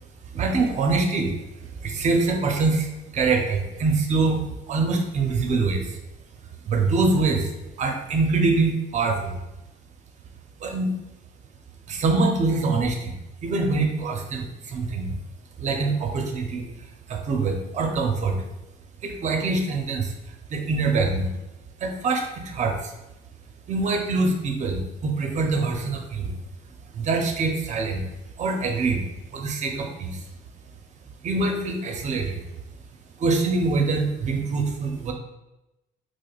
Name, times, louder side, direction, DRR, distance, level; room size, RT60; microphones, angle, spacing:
voice 1, 0.3-1.3 1.8-6.0 6.7-7.5 7.8-9.4 10.6-10.9 11.9-13.2 13.4-15.1 15.6-16.6 17.1-18.4 19.0-20.1 20.5-21.3 21.8-22.9 23.7-26.3 26.9-28.0 28.4-29.0 29.3-30.2 31.2-32.4 33.2-35.1, right 3 dB, 45° right, 3 dB, 0.6 m, -24 dB
4.7 x 2.1 x 2.3 m, 0.95 s
cardioid pair, 110°, 17 cm